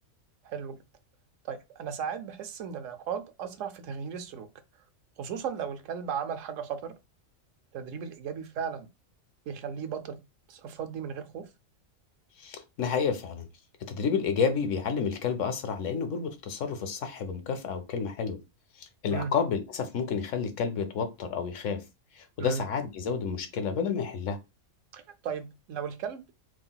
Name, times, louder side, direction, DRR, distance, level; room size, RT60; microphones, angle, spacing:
voice 1, 0.4-0.8 1.4-4.5 5.2-6.9 7.7-8.9 9.5-10.2 10.5-11.4 19.1-19.3 22.4-22.6 24.9-26.2, right 7 dB, 75° right, 1.0 m, -36 dB
voice 2, 12.4-13.5 13.9-18.4 18.8-21.8 22.2-24.4, left 6 dB, 75° left, 1.1 m, -30 dB
5.6 x 2.7 x 2.3 m
omnidirectional pair, 1.3 m